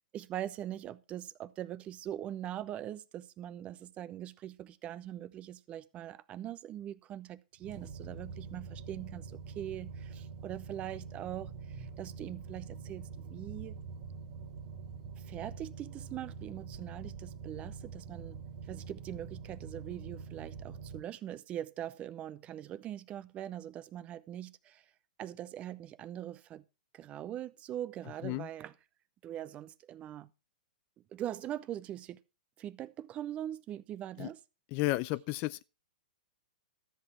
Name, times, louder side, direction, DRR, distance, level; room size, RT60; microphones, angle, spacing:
voice 1, 0.1-13.8 15.2-18.4 18.7-24.9 25.2-26.6 26.9-28.7 29.2-30.3 31.1-32.2 32.6-34.4, right 11 dB, 25° right, 0.7 m, -42 dB
sound 1, 7.6-21.0, right 5 dB, 50° right, 2.1 m, -45 dB
voice 2, 34.7-35.6, left 19 dB, 40° left, 0.5 m, -32 dB
13.0 x 7.9 x 4.5 m
hypercardioid pair, 125°, 5 cm